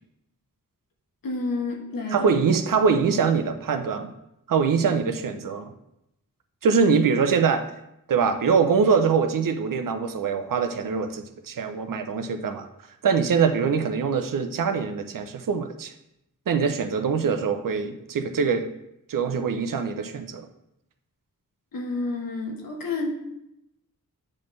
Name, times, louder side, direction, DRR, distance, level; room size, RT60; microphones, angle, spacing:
voice 1, 1.2-2.3 21.7-23.1, left 3 dB, 85° left, 0 dB, 1.3 m, -29 dB
voice 2, 2.1-4.1 4.5-5.7 6.6-7.7 8.1-12.7 13.0-15.9 16.5-18.6 19.1-20.5, right 5 dB, 70° right, 8 dB, 0.6 m, -23 dB
8.5 x 4.3 x 3.2 m, 0.83 s
wide cardioid pair, 150°, 34 cm